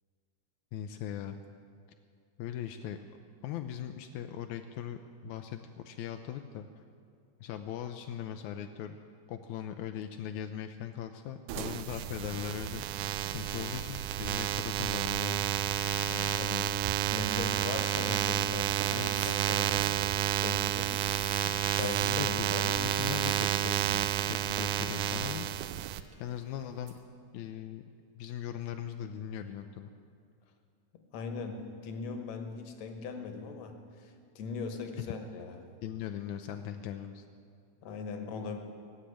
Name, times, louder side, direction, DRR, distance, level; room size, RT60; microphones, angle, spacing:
voice 1, 0.7-1.4 2.4-3.0 3.4-6.8 7.4-9.0 9.3-15.5 18.9-19.1 21.6-25.9 26.2-26.9 27.3-27.8 28.2-29.9 35.8-37.2, left 10 dB, 80° left, 6 dB, 1.7 m, -40 dB
sound 1, 11.5-26.0, right 12 dB, 80° right, 2.0 m, -31 dB
sound 2, 15.2-27.0, right 5 dB, 55° right, 1.5 m, -56 dB
voice 2, 16.1-21.0 21.8-22.7 31.1-35.6 37.8-38.6, left 4 dB, 60° left, 6 dB, 2.1 m, -40 dB
18.5 x 7.5 x 9.9 m, 2.3 s
omnidirectional pair, 3.8 m